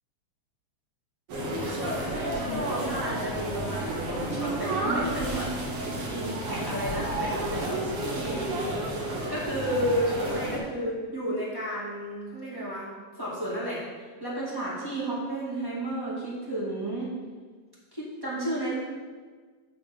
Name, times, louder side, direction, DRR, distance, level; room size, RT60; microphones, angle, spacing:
sound 1, 1.3-10.6, right 1 dB, 55° right, 2.1 m, -31 dB
voice 1, 1.6-5.5 6.1-8.5 9.3-12.9 13.2-17.1 17.9-18.8, right 1 dB, 10° right, -8 dB, 1.6 m, -32 dB
8.6 x 3.9 x 6.9 m, 1.5 s
omnidirectional pair, 3.4 m